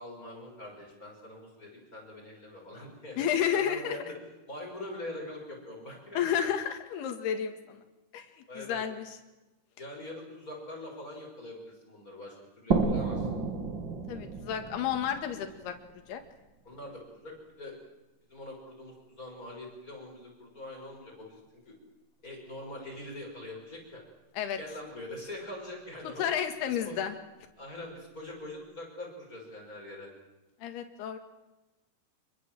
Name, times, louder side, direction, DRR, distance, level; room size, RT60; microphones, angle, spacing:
voice 1, 0.0-3.2 3.5-4.2 4.5-6.2 8.5-8.8 9.8-13.3 16.6-17.7 18.3-21.4 21.6-21.7 22.2-24.0 24.6-26.2 26.7-27.0 27.6-30.1, left 1 dB, 20° left, 0 dB, 6.4 m, -43 dB
voice 2, 3.2-4.0 6.2-7.8 8.1-8.3 8.6-9.2 14.1-15.7 16.1-16.2 24.4-24.6 26.2-27.2 30.6-31.2, left 9 dB, 75° left, 6 dB, 3.9 m, -31 dB
sound 1, 12.7-16.2, right 4 dB, 40° right, 1.9 m, -32 dB
26.5 x 22.5 x 7.7 m, 1.1 s
omnidirectional pair, 4.7 m